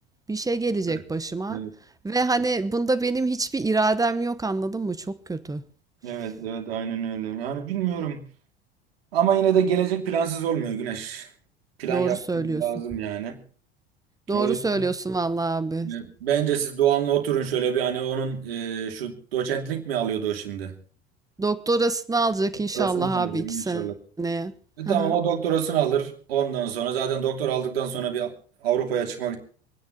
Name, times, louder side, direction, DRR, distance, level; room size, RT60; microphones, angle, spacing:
voice 1, 0.3-1.6 2.0-5.6 11.9-12.7 14.3-15.9 21.4-24.5 24.8-25.1, right 3 dB, 10° right, 1.1 m, -26 dB
voice 2, 6.0-8.2 9.1-11.3 11.8-13.4 14.3-14.8 15.8-20.7 22.7-23.9 24.8-28.3 28.6-29.4, right 9 dB, 65° right, 2.9 m, -26 dB
26.5 x 10.0 x 4.1 m
figure-of-eight pair, 70°, 32 cm